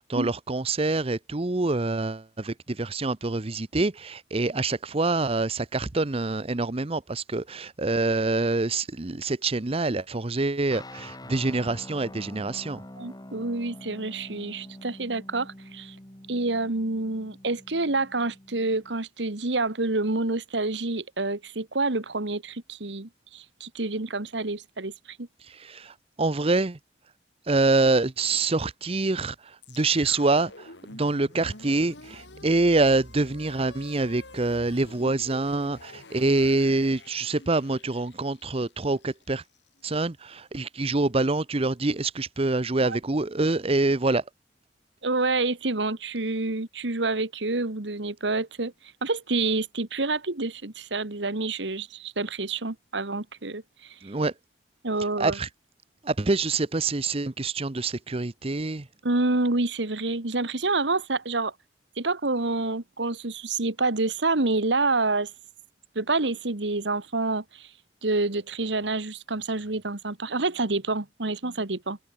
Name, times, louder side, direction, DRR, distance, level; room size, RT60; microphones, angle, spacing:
voice 1, 0.0-12.8 25.4-26.8 27.5-39.4 39.8-44.2 54.0-54.3 55.2-55.5 56.0-58.9, right 3 dB, 30° right, 0.8 m, -26 dB
sound 1, 10.7-19.0, left 1 dB, 20° left, 2.8 m, -46 dB
voice 2, 13.0-15.9 16.3-25.3 42.8-43.0 45.0-48.7 49.0-53.9 54.8-55.4 59.0-61.5 62.0-65.3 65.9-67.7 68.0-72.0, right 3 dB, 75° right, 1.7 m, -28 dB
sound 2, 29.6-39.8, left 2 dB, 75° left, 6.0 m, -47 dB
open air
head